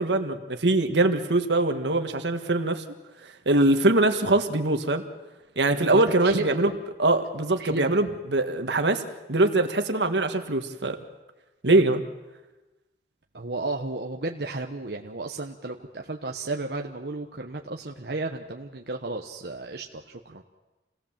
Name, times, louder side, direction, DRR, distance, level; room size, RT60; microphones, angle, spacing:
voice 1, 0.0-2.8 3.4-5.0 5.5-6.7 7.0-9.0 9.3-11.0 11.6-12.0, right 2 dB, 90° right, 6 dB, 1.7 m, -22 dB
voice 2, 5.8-6.6 7.6-7.9 13.3-20.4, right 2 dB, 65° right, 2 dB, 1.1 m, -33 dB
27.5 x 18.0 x 7.4 m, 1.1 s
head